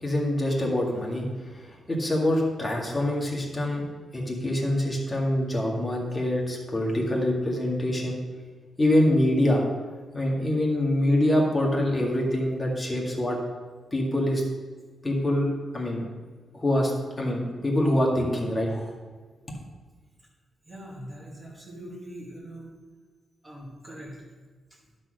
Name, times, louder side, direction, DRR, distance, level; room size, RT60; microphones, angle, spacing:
voice 1, 0.0-3.8 4.1-8.2 8.8-9.6 10.1-13.4 13.9-14.4 15.0-15.5 15.7-16.0 16.5-16.9 17.2-18.9, left 1 dB, 15° left, -2 dB, 1.8 m, -25 dB
voice 2, 20.6-22.8 23.4-24.3, right 1 dB, 10° right, -5 dB, 2.0 m, -42 dB
12.0 x 4.2 x 6.4 m, 1.4 s
wide cardioid pair, 160°, 0 cm